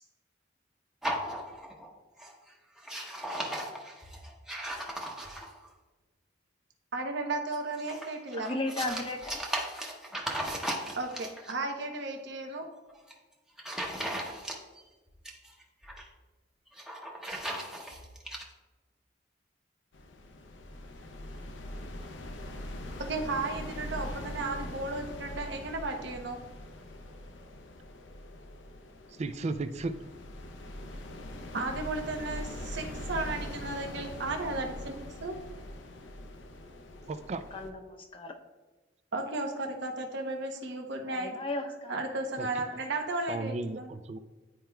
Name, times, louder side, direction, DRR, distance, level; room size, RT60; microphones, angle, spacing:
sound 1, 1.0-1.9 2.2-2.5 2.8-5.7 7.5-11.5 12.9-13.1 13.6-14.8 15.1-16.1 16.7-18.4, right 1 dB, 5° right, 0.8 m, -37 dB
voice 1, 6.9-8.5 11.0-12.7 23.1-26.4 31.5-34.9 35.2-35.3 39.1-41.3 41.9-43.9, right 2 dB, 65° right, 3 dB, 0.9 m, -34 dB
voice 2, 8.4-9.4 37.5-38.3 41.0-42.0, left 2 dB, 30° left, 4 dB, 0.7 m, -35 dB
sound 2, 19.9-37.7, left 1 dB, 75° left, 0.6 m, -42 dB
voice 3, 29.2-29.9 37.1-37.4 42.4-42.5 43.3-44.2, right 3 dB, 35° right, 11 dB, 0.3 m, -34 dB
10.5 x 4.4 x 2.3 m, 1.2 s
head